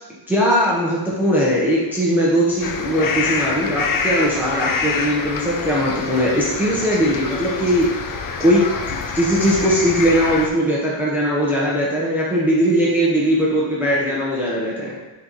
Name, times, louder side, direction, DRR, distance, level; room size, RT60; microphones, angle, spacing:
voice 1, 0.3-7.9 8.4-14.9, equal, 5° right, -6 dB, 1.0 m, -19 dB
sound 1, 2.6-10.5, left 5 dB, 40° left, 0.6 m, -26 dB
10.5 x 4.2 x 3.1 m, 1.2 s
wide cardioid pair, 145°, 50 cm